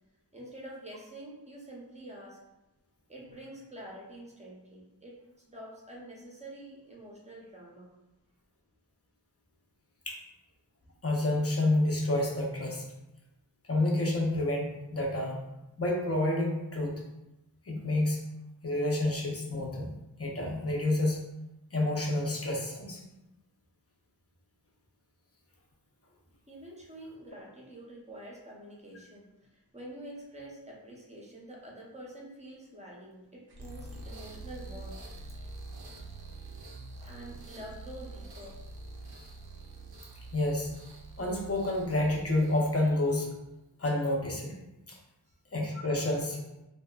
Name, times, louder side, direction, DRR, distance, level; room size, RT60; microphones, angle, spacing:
voice 1, 0.3-2.4 3.1-5.2 5.5-7.9 26.5-35.0 37.0-38.6 45.3-45.4, right 1 dB, 15° right, -3 dB, 0.7 m, -47 dB
voice 2, 11.0-12.8 13.7-15.4 15.8-17.0 17.7-18.2 18.6-19.9 20.2-21.2 21.7-23.0 40.3-40.7 41.2-43.3 43.8-44.5 44.9-45.0 45.5-46.4, left 1 dB, 35° left, -1 dB, 0.6 m, -29 dB
sound 1, 33.5-43.5, right 2 dB, 65° right, 0.6 m, -46 dB
2.7 x 2.3 x 2.3 m, 0.94 s
wide cardioid pair, 60°, 42 cm